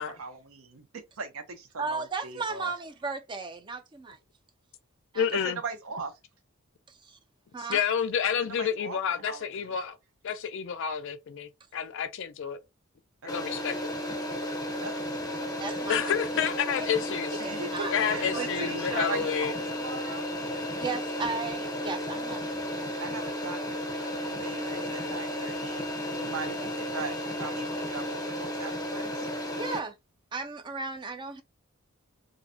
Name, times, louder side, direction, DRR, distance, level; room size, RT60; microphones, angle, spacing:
voice 1, 0.0-1.4 1.7-2.7 5.3-6.1 8.4-9.6 13.2-13.5 14.8-15.1 17.4-20.3 23.0-25.9 26.1-29.3, right 4 dB, 85° right, 0.6 m, -39 dB
voice 2, 1.8-4.2 5.1-5.3 6.9-7.2 7.5-7.8 15.6-16.1 16.4-16.9 17.4-18.1 18.3-18.7 19.0-19.1 20.8-22.5 29.5-30.0 30.3-31.4, right 4 dB, 20° right, 0.3 m, -35 dB
voice 3, 5.1-5.6 7.6-10.0 10.2-12.6 13.2-13.9 15.9-17.4 17.9-19.5, left 7 dB, 65° left, 0.4 m, -29 dB
sound 1, 13.3-29.8, left 1 dB, 20° left, 0.6 m, -33 dB
2.6 x 2.0 x 2.5 m
head